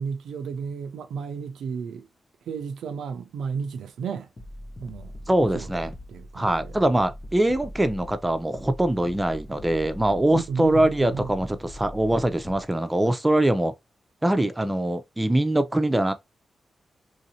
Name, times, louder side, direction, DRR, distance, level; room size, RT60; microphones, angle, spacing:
voice 1, 0.0-2.1 2.5-4.3 4.8-5.2 5.5-5.7 6.1-6.7 10.3-11.3, right 6 dB, 90° right, 0.4 m, -33 dB
sound 1, 4.4-12.7, left 1 dB, 35° left, 0.6 m, -41 dB
voice 2, 5.3-5.9 6.3-13.7 14.2-16.1, right 1 dB, 15° right, 0.6 m, -23 dB
3.1 x 2.7 x 2.7 m
cardioid pair, 60°, 0 cm